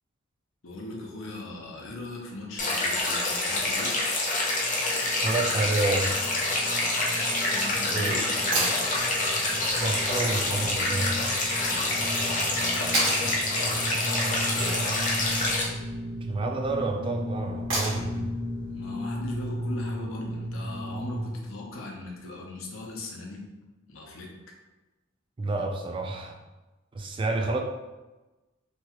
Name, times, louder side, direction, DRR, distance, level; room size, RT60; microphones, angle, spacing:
voice 1, 0.6-3.9 7.5-8.8 11.6-15.3 18.6-23.5 23.9-24.3, left 2 dB, 85° left, 0 dB, 0.6 m, -40 dB
sound 1, 2.6-15.6, left 2 dB, 40° left, 0.6 m, -27 dB
sound 2, 4.2-21.3, equal, 40° right, 0.7 m, -36 dB
voice 2, 5.2-6.1 7.9-8.2 9.8-11.2 16.2-18.3 25.4-26.4 26.9-27.6, right 2 dB, 25° right, 3 dB, 0.3 m, -29 dB
sound 3, 8.5-8.8 11.1-11.2 12.9-13.3 15.3-15.7 17.7-18.2 20.3-20.4, right 1 dB, 70° right, 1.2 m, -28 dB
3.0 x 2.3 x 2.9 m, 1.1 s
head